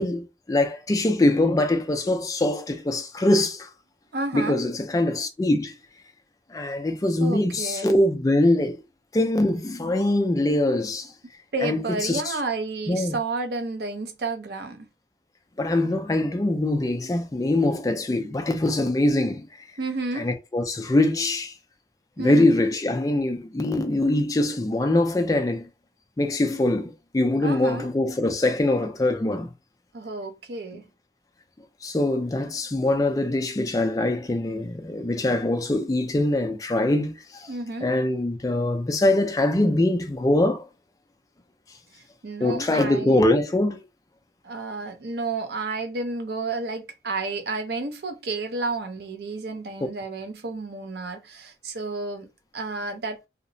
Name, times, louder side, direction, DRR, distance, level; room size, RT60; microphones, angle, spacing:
voice 1, 0.0-3.7 4.3-5.8 6.5-8.8 9.1-11.1 11.6-12.4 12.9-13.1 15.6-19.7 20.1-21.5 22.2-25.7 26.2-29.5 31.8-37.5 37.8-40.7 42.4-43.9, left 1 dB, 20° left, 0.3 m, -23 dB
voice 2, 4.1-4.6 7.2-7.9 11.5-14.9 19.8-20.3 22.2-22.5 27.4-27.9 29.9-30.8 37.5-37.9 41.9-43.2 44.4-53.2, right 3 dB, 60° right, 0.5 m, -31 dB
2.8 x 2.0 x 2.5 m
head